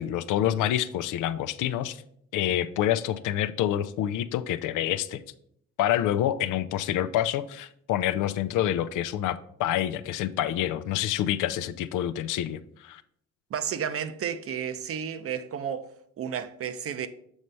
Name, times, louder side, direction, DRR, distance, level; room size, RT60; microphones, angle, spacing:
voice 1, 0.0-2.0 2.3-5.2 5.8-13.0, left 11 dB, 85° left, 0.5 m, -27 dB
voice 2, 13.5-17.1, right 8 dB, 50° right, 0.6 m, -32 dB
7.2 x 3.2 x 5.3 m
cardioid pair, 90°, 30 cm